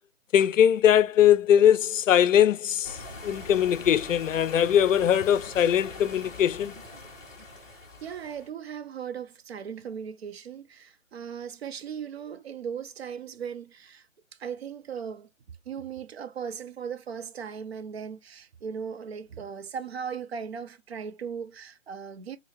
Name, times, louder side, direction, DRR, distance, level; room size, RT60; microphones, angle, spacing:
voice 1, 0.3-3.0 3.2-6.7, left 10 dB, 80° left, 0.5 m, -21 dB
sound 1, 2.8-8.5, left 2 dB, 5° left, 1.3 m, -43 dB
voice 2, 8.0-14.1 14.4-15.3 15.7-22.4, right 7 dB, 55° right, 0.7 m, -37 dB
3.9 x 2.8 x 3.0 m
hypercardioid pair, 160°, 38 cm